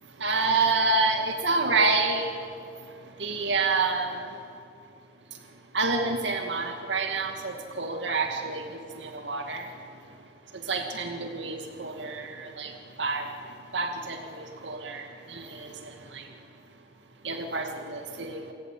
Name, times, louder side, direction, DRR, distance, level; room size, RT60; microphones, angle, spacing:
voice 1, 0.2-2.3 3.2-4.3 5.7-9.7 10.7-12.7 13.0-13.3 13.7-16.3 17.2-18.5, right 3 dB, 75° right, 4 dB, 2.4 m, -28 dB
29.0 x 19.0 x 9.4 m, 2.5 s
head